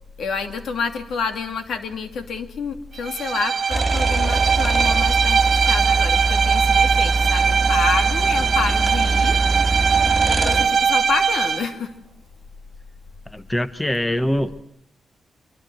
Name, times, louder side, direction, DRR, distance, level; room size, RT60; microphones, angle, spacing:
voice 1, 0.2-9.4 10.2-11.9, left 5 dB, 75° left, 8 dB, 2.7 m, -28 dB
Bowed string instrument, 3.0-11.7, right 6 dB, 55° right, 1.7 m, -20 dB
sound 1, 3.7-10.7, right 3 dB, 10° right, 4.5 m, -23 dB
voice 2, 13.3-14.6, left 1 dB, 10° left, 13 dB, 1.1 m, -23 dB
25.5 x 23.0 x 7.9 m, 0.71 s
cardioid pair, 115°, 0 cm